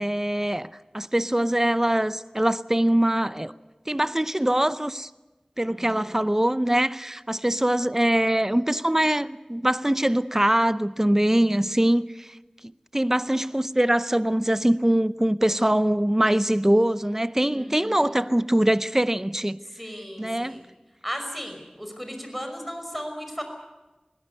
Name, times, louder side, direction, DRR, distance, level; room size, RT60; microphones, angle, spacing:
voice 1, 0.0-3.5 3.9-5.1 5.6-12.3 12.9-19.6 20.2-20.6, right 1 dB, 20° right, 0.6 m, -23 dB
voice 2, 5.6-6.1 11.2-11.6 17.5-18.2 19.7-20.6 21.0-23.4, equal, ahead, 5.5 m, -36 dB
21.5 x 16.5 x 9.4 m
wide cardioid pair, 40°, 2 cm